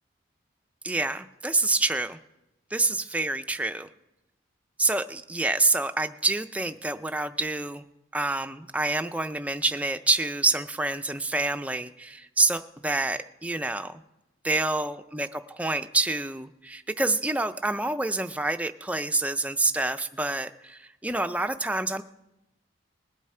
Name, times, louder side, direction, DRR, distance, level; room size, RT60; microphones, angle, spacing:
voice 1, 0.8-2.2 2.7-3.9 4.8-7.8 8.1-13.9 14.4-22.0, right 2 dB, 5° right, 9 dB, 0.4 m, -27 dB
19.5 x 8.3 x 4.4 m, 0.93 s
head